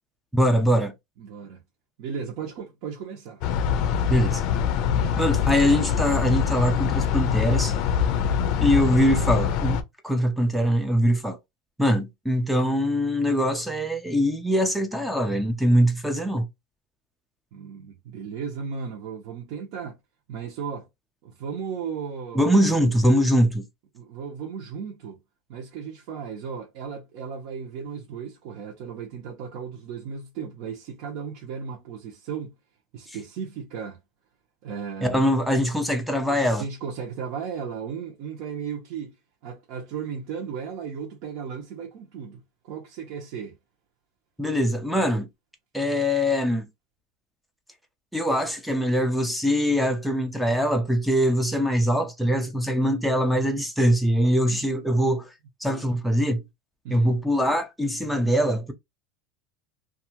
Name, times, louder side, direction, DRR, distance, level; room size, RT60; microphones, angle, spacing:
voice 1, 0.3-0.9 4.1-4.4 5.2-7.8 8.6-11.4 11.8-16.5 22.3-23.6 33.1-33.2 35.0-36.7 44.4-45.3 45.7-46.7 48.1-55.3 55.6-56.4 56.9-58.7, equal, ahead, 0.4 m, -22 dB
voice 2, 1.2-1.6 2.0-3.4 17.5-20.0 20.3-20.9 21.2-22.5 23.9-25.2 25.5-32.6 32.9-34.0 34.6-35.3 36.2-39.1 39.4-43.6 54.4-54.6 56.8-57.1, right 6 dB, 55° right, 0.8 m, -35 dB
sound 1, 3.4-9.8, left 7 dB, 50° left, 0.5 m, -24 dB
2.7 x 2.4 x 2.8 m
supercardioid pair, 150°, 0 cm